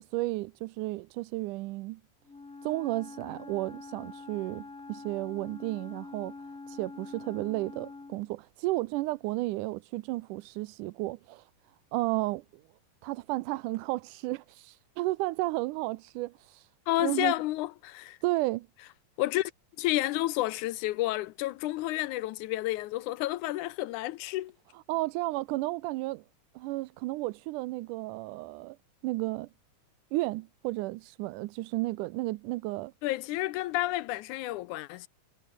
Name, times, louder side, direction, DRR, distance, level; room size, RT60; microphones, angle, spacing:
voice 1, 0.0-2.0 2.6-6.3 6.7-11.5 11.9-12.6 13.0-16.7 17.0-17.3 18.2-18.7 24.9-26.2 26.6-28.8 29.0-29.5 30.1-32.9, right 20 dB, 85° right, 2.1 m, -33 dB
Wind instrument woodwind instrument, 2.2-8.3, left 3 dB, 25° left, 3.2 m, -45 dB
voice 2, 16.9-18.2 19.2-19.5 19.8-24.5 33.0-35.1, left 17 dB, 80° left, 2.1 m, -30 dB
omnidirectional pair, 3.6 m